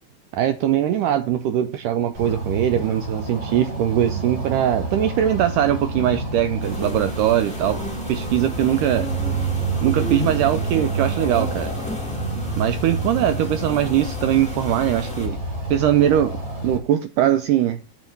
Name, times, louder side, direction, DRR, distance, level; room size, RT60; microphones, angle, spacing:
voice 1, 0.3-7.8 8.1-9.1 9.8-11.7 12.5-15.4 15.7-17.8, right 11 dB, 85° right, 1.9 m, -21 dB
sound 1, 2.1-16.8, right 3 dB, 20° right, 1.0 m, -28 dB
sound 2, 6.6-15.3, left 1 dB, 5° left, 0.7 m, -34 dB
7.3 x 4.7 x 6.6 m
omnidirectional pair, 4.3 m